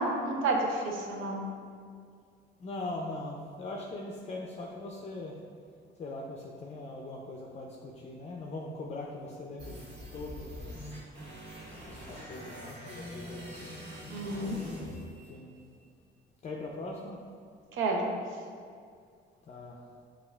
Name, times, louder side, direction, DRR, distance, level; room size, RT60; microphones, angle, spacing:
voice 1, 0.0-1.4 14.1-14.6 17.7-18.2, right 2 dB, 80° right, 1 dB, 0.6 m, -30 dB
voice 2, 2.6-5.4 6.0-9.8 10.1-11.0 11.8-13.8 14.6-14.8 15.3-15.5 16.4-17.2 19.5-19.8, left 2 dB, 35° left, -1 dB, 0.4 m, -41 dB
sound 1, 9.6-15.6, equal, 60° right, 1.5 m, -44 dB
6.2 x 2.4 x 2.2 m, 2.2 s
cardioid pair, 90°, 20 cm